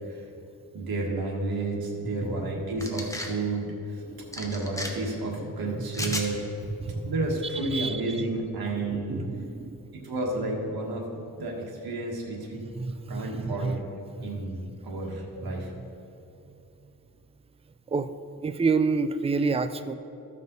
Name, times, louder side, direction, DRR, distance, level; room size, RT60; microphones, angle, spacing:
voice 1, 0.7-3.7 4.4-6.4 7.1-9.2 10.0-11.0 11.4-11.5 11.8-12.6 13.1-13.8 14.2-15.7, right 2 dB, 85° right, -1 dB, 1.6 m, -31 dB
voice 2, 2.1-2.5 4.1-4.2 6.0-6.2 6.8-7.1 7.5-8.2 8.9-9.8 12.7-13.8 15.8-15.9 17.9-18.1 18.4-19.9, right 4 dB, 20° right, 11 dB, 0.3 m, -29 dB
sound 1, 2.8-3.3 4.3-4.9 5.9-6.3, left 1 dB, 10° left, 1.0 m, -33 dB
14.0 x 5.4 x 4.0 m, 2.8 s
wide cardioid pair, 100°, 35 cm